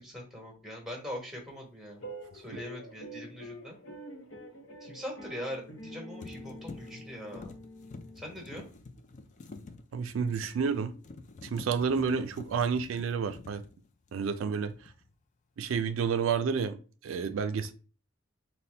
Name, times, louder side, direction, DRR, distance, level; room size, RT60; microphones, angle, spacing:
voice 1, 0.0-2.0 2.3-3.8 4.8-7.6 8.1-8.7, equal, ahead, 1.2 m, -42 dB
sound 1, 2.0-8.5, equal, 85° left, 1.0 m, -46 dB
sound 2, 2.2-2.4 5.5-5.9 6.2-14.4 14.7-15.1, left 3 dB, 40° left, 0.4 m, -48 dB
voice 2, 9.9-10.9 11.4-13.6 14.1-14.7 15.6-16.8 17.0-17.7, right 6 dB, 80° right, 0.4 m, -30 dB
4.1 x 2.1 x 3.3 m
head